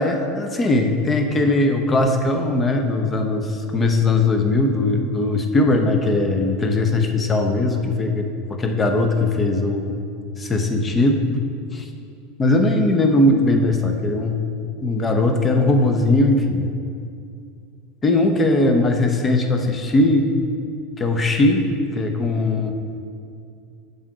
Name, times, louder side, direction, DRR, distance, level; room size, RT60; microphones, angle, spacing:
voice 1, 0.0-10.0 10.4-11.2 11.7-11.8 12.4-14.4 14.8-16.7 18.0-20.3 21.0-21.7 21.9-22.7, left 2 dB, 25° left, 4 dB, 0.9 m, -19 dB
7.4 x 5.6 x 4.8 m, 2.4 s
figure-of-eight pair, 80°, 0 cm